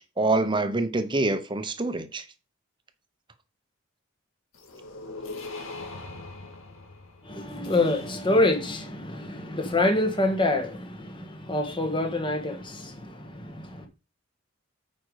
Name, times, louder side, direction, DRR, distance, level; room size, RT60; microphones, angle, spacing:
voice 1, 0.2-2.2, right 2 dB, 25° right, 0.9 m, -25 dB
sound 1, 4.5-8.6, left 3 dB, 80° left, 1.9 m, -41 dB
voice 2, 7.2-13.9, left 2 dB, 25° left, 1.4 m, -26 dB
9.0 x 5.2 x 4.8 m
head